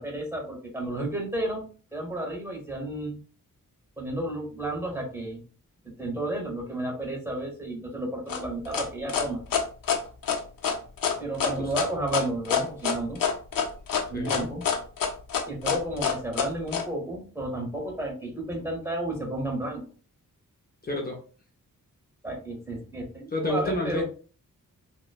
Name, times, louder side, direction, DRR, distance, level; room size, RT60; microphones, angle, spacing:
voice 1, 0.0-1.6 1.9-3.2 4.0-5.4 5.8-9.4 11.2-13.2 14.1-14.6 15.5-19.8 22.2-24.0, right 1 dB, 10° right, -1 dB, 0.9 m, -32 dB
sound 1, 8.3-16.8, left 7 dB, 85° left, 0.5 m, -26 dB
voice 2, 14.1-14.5 20.8-21.2 23.3-24.0, left 1 dB, 30° left, 0 dB, 0.5 m, -29 dB
2.9 x 2.1 x 2.3 m, 0.38 s
wide cardioid pair, 125°, 33 cm